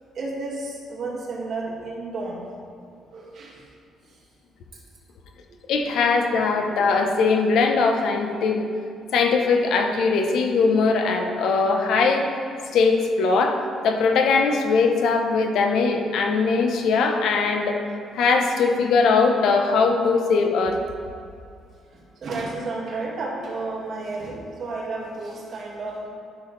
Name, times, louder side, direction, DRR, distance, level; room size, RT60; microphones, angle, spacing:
voice 1, 0.1-2.4 3.1-3.6 5.5-5.6 5.9-6.0 21.9-26.1, right 3 dB, 55° right, -3 dB, 2.1 m, -32 dB
voice 2, 5.7-8.7 9.1-12.2 12.7-13.6 13.8-17.8 18.1-20.8, left 4 dB, 75° left, 4 dB, 0.9 m, -20 dB
12.0 x 6.3 x 3.3 m, 2.4 s
cardioid pair, 115°, 0 cm